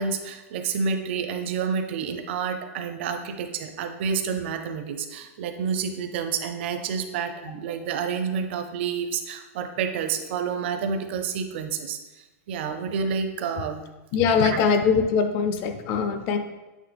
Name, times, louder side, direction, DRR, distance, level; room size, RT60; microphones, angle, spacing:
voice 1, 0.0-12.0 12.5-13.8 14.4-14.6, right 6 dB, 45° right, 7 dB, 0.5 m, -29 dB
voice 2, 14.1-16.4, left 6 dB, 25° left, 8 dB, 0.4 m, -22 dB
8.3 x 3.5 x 3.4 m, 1.1 s
supercardioid pair, 175°, 8 cm